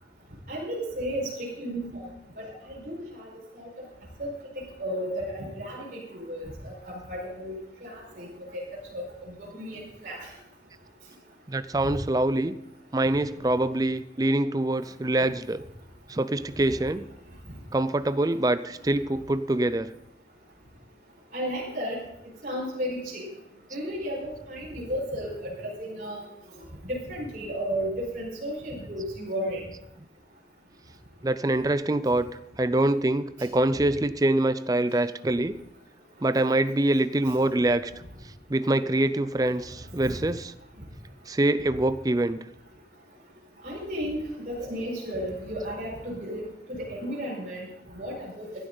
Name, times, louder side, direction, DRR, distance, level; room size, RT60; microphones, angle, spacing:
voice 1, 0.5-2.0 2.4-3.3 3.5-3.7 4.2-6.7 7.1-8.6 8.9-10.3 11.8-11.9 21.3-22.0 22.4-23.3 23.7-26.3 26.8-29.6 40.0-40.2 43.6-44.2 44.5-46.4 46.7-47.7 47.9-48.5, equal, 45° right, -5 dB, 4.8 m, -33 dB
voice 2, 11.5-12.6 12.9-15.6 16.1-17.0 17.7-19.9 31.2-32.3 32.6-35.6 36.2-37.9 38.5-40.5 41.3-42.4, right 1 dB, 20° right, 13 dB, 0.4 m, -25 dB
16.0 x 11.5 x 3.9 m, 0.79 s
head